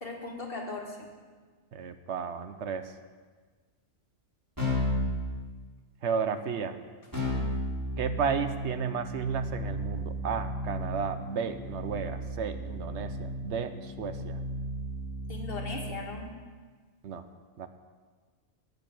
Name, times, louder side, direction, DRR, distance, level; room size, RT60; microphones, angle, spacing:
voice 1, 0.0-1.1 7.3-7.5 15.3-16.3, left 3 dB, 55° left, 1 dB, 1.8 m, -38 dB
voice 2, 1.7-2.8 6.0-6.8 8.0-14.4 17.0-17.2 17.6-17.7, right 6 dB, 75° right, 10 dB, 1.0 m, -33 dB
Keyboard (musical), 4.6-5.1 7.1-16.0, equal, 15° right, 4.4 m, -34 dB
10.0 x 6.8 x 8.7 m, 1.5 s
omnidirectional pair, 1.2 m